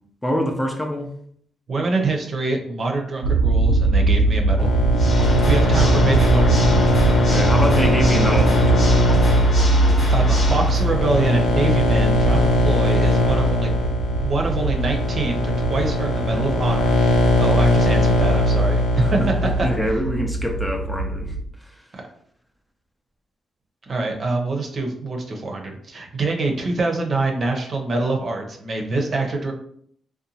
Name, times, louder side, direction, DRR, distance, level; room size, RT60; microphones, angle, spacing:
voice 1, 0.2-1.1 5.8-5.9 7.1-9.1 19.0-19.3 19.6-21.3, equal, 10° left, 3 dB, 0.5 m, -25 dB
voice 2, 1.7-4.7 5.5-6.9 10.1-13.7 14.2-16.9 17.4-18.8 19.1-19.7 21.9-22.1 23.8-29.5, right 2 dB, 55° right, 2 dB, 0.6 m, -25 dB
sound 1, 3.2-21.4, right 2 dB, 90° right, 0.3 m, -21 dB
sound 2, 4.6-19.8, left 2 dB, 80° left, 0.5 m, -21 dB
Water / Mechanisms, 4.9-10.9, left 1 dB, 55° left, 1.0 m, -28 dB
2.7 x 2.2 x 2.8 m, 0.63 s
supercardioid pair, 50°, 0 cm